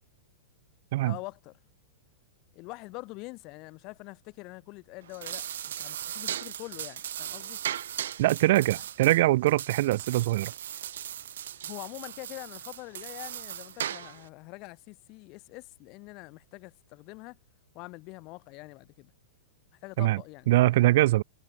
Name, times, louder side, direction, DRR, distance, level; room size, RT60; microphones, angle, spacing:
voice 1, 1.0-1.6 2.5-5.4 5.7-7.6 11.6-17.4 17.7-19.1 19.8-20.5, left 25 dB, 40° left, 7.3 m, -44 dB
sound 1, 5.0-14.3, right 10 dB, 75° right, 3.0 m, -38 dB
voice 2, 8.2-10.5 20.0-20.2 20.5-21.2, right 17 dB, 60° right, 0.5 m, -23 dB
hypercardioid pair, 140°, 0 cm